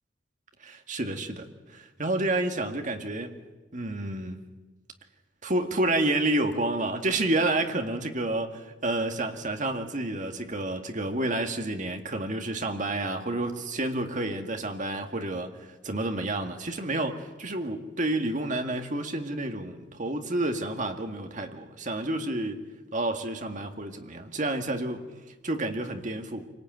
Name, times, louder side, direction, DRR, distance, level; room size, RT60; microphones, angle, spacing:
voice 1, 0.6-1.5 1.7-3.3 3.7-4.4 5.4-22.6 22.9-25.0 25.4-26.5, right 2 dB, 45° right, 5 dB, 2.1 m, -29 dB
26.0 x 18.5 x 9.3 m, 1.2 s
head